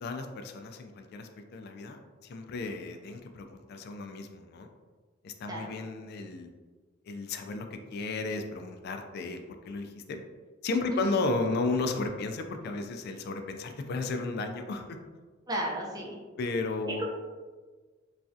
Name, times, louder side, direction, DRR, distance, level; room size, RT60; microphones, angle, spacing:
voice 1, 0.0-4.7 5.2-6.5 7.0-10.2 10.6-15.0 16.4-17.0, left 3 dB, 55° left, 6 dB, 0.3 m, -34 dB
voice 2, 15.5-16.2 17.0-17.1, right 1 dB, 20° right, -2 dB, 0.5 m, -34 dB
3.1 x 2.4 x 2.6 m, 1.4 s
head